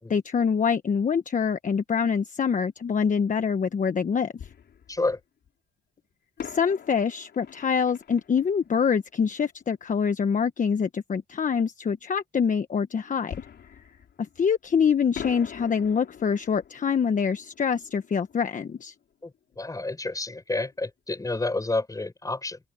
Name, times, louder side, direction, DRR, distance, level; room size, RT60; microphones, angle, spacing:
voice 1, 0.1-4.3 6.4-13.3 13.7-13.8 14.2-18.9, left 6 dB, 40° left, 1.3 m, -25 dB
Fireworks, 3.1-3.2 4.4-5.5 6.4-9.8 13.3-14.7 15.1-19.7 19.9-20.0 20.6-20.8, left 8 dB, 60° left, 3.8 m, -44 dB
voice 2, 4.9-5.2 19.2-19.3 19.6-22.6, left 2 dB, 15° left, 5.0 m, -29 dB
open air
cardioid pair, 90°, 20 cm